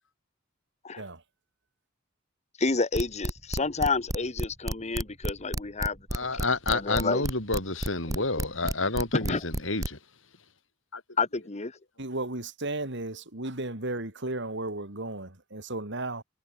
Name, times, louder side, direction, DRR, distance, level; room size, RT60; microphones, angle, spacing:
voice 1, 2.6-6.3 6.7-7.2 9.1-9.4 11.2-11.7, left 3 dB, 35° left, 1.2 m, -29 dB
sound 1, 2.9-9.9, right 1 dB, 15° right, 1.3 m, -30 dB
voice 2, 6.1-10.0 10.9-11.0, left 3 dB, 70° left, 6.4 m, -29 dB
voice 3, 12.0-16.2, right 2 dB, 60° right, 3.9 m, -34 dB
head